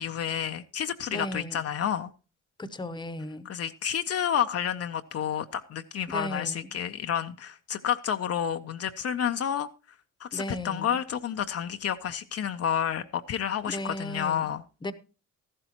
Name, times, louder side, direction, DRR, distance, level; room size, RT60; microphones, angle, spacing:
voice 1, 0.0-2.1 3.4-9.7 10.2-14.6, left 9 dB, 55° left, 0.6 m, -30 dB
voice 2, 1.1-1.6 2.6-3.5 6.1-6.7 10.3-11.0 13.7-14.5 14.8-14.9, left 1 dB, 15° left, 0.9 m, -35 dB
14.0 x 12.0 x 2.9 m
cardioid pair, 90°, 30 cm